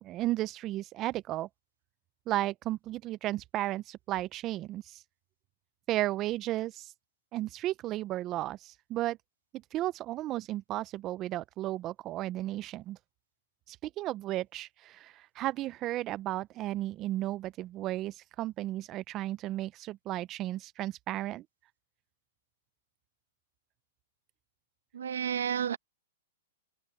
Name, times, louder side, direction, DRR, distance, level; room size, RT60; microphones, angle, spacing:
voice 1, 0.0-1.5 2.3-5.0 5.9-6.9 7.3-9.2 9.7-13.0 13.7-21.4, right 15 dB, 30° right, 0.4 m, -34 dB
voice 2, 24.9-25.8, right 8 dB, 85° right, 0.8 m, -31 dB
open air
hypercardioid pair, 145°, 0 cm